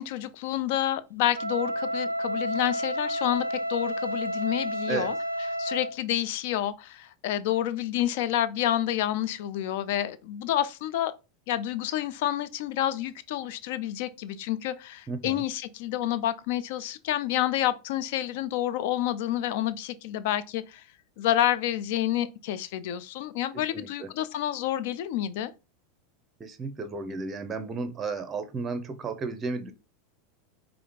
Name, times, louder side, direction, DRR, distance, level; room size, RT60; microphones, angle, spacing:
voice 1, 0.0-5.1 5.6-11.1 11.5-20.8 21.2-25.5, left 12 dB, 55° left, 0.4 m, -29 dB
Wind instrument woodwind instrument, 1.3-6.0, equal, 85° right, 0.3 m, -31 dB
voice 2, 15.1-15.4 23.5-24.1 26.4-29.7, right 4 dB, 25° right, 0.6 m, -33 dB
4.9 x 2.6 x 2.9 m
figure-of-eight pair, 85°, 0 cm